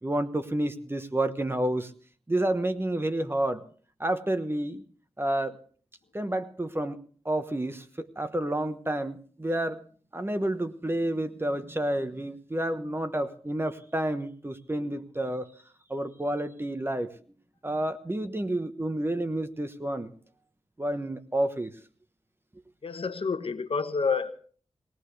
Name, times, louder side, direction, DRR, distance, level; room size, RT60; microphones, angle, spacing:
voice 1, 0.0-1.9 2.3-3.6 4.0-4.8 5.2-5.6 6.1-7.0 7.2-9.8 10.1-15.5 15.9-17.1 17.6-20.1 20.8-21.7, right 1 dB, 20° right, 10 dB, 1.2 m, -29 dB
voice 2, 22.8-24.3, left 5 dB, 55° left, 9 dB, 1.2 m, -28 dB
21.5 x 18.0 x 3.3 m, 0.41 s
cardioid pair, 65°, 11 cm